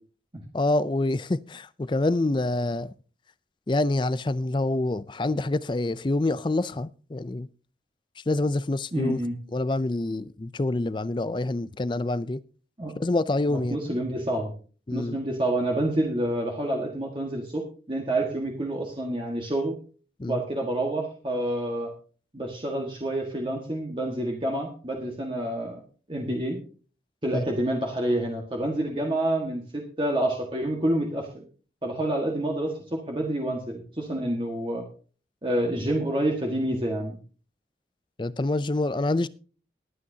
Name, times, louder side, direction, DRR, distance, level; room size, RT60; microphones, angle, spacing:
voice 1, 0.5-2.9 3.7-7.5 8.2-9.2 9.5-12.4 13.0-13.8 14.9-15.2 20.2-20.4 27.3-27.4 38.2-39.3, left 2 dB, 25° left, 0.4 m, -26 dB
voice 2, 8.9-9.3 12.8-12.9 13.5-14.5 14.9-19.7 20.3-21.9 22.3-25.8 26.1-26.6 27.2-31.4 31.8-34.8 35.4-37.2, right 1 dB, 30° right, 1.6 m, -28 dB
20.0 x 8.8 x 2.8 m
head